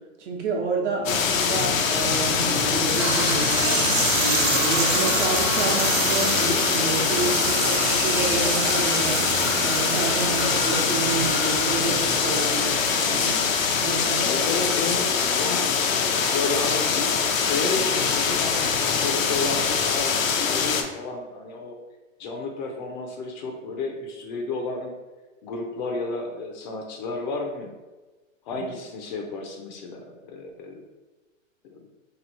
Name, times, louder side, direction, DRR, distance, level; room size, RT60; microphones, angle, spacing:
voice 1, 0.2-3.8 4.2-9.2 9.6-13.4 13.8-14.3 28.5-28.7, right 4 dB, 60° right, 0 dB, 1.0 m, -29 dB
sound 1, 1.1-20.8, left 6 dB, 85° left, 0.7 m, -23 dB
sound 2, 2.9-12.7, right 4 dB, 85° right, 0.9 m, -28 dB
sound 3, 3.5-13.4, right 3 dB, 30° right, 0.4 m, -36 dB
voice 2, 14.2-21.7 22.2-24.9 25.4-27.7 28.5-30.8 31.6-31.9, left 3 dB, 35° left, 2 dB, 0.5 m, -32 dB
3.1 x 2.7 x 4.0 m, 1.2 s
hypercardioid pair, 140°, 39 cm